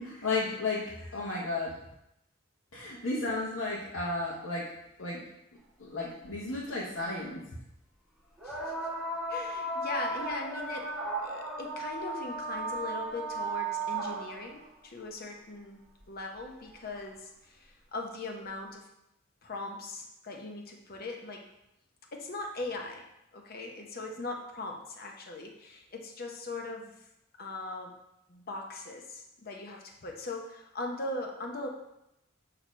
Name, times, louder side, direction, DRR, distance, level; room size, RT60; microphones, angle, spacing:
voice 1, 0.0-1.7 2.7-4.6 5.0-5.2 5.8-7.4, left 3 dB, 80° left, -6 dB, 1.0 m, -33 dB
sound 1, 6.3-6.4 8.4-14.5 16.0-16.1 17.0-17.1, right 2 dB, ahead, 1.3 m, -35 dB
voice 2, 9.3-10.9 11.2-15.8 16.1-18.9 19.4-21.5 22.1-23.0 23.3-27.1 27.4-27.9 28.3-31.7, left 2 dB, 50° left, 2 dB, 0.9 m, -40 dB
6.3 x 2.9 x 5.0 m, 0.86 s
head